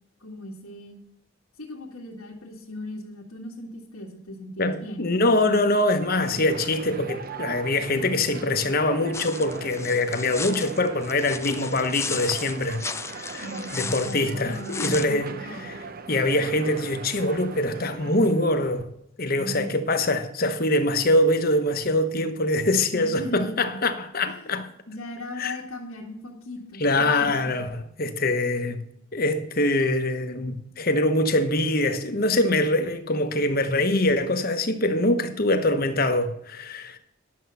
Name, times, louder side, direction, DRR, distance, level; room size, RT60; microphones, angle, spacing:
voice 1, 0.2-1.0 1.6-5.1 13.4-15.7 19.4-19.7 22.9-23.8 24.2-24.5 24.9-27.5, left 1 dB, 85° left, 1.9 m, -38 dB
voice 2, 4.6-12.8 13.2-13.4 13.7-15.8 16.1-18.9 19.2-24.7 25.4-25.5 26.8-28.8 29.1-37.0, left 1 dB, 45° left, 1.1 m, -24 dB
sound 1, 6.0-18.8, right 4 dB, 45° right, 0.7 m, -40 dB
sound 2, 9.1-15.1, left 5 dB, 15° left, 0.4 m, -35 dB
11.5 x 7.4 x 5.5 m
head